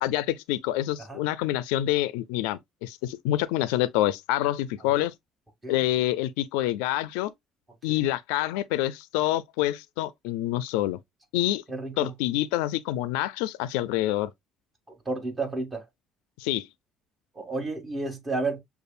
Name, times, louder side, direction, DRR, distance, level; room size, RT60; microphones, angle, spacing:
voice 1, 0.0-5.1 5.7-7.3 7.8-11.0 11.3-11.6 12.0-14.3 16.4-16.7, left 14 dB, 90° left, 0.4 m, -27 dB
voice 2, 11.7-12.1 14.9-15.9 17.3-18.6, right 3 dB, 25° right, 2.3 m, -32 dB
6.5 x 2.4 x 2.4 m
supercardioid pair, 85°, 0 cm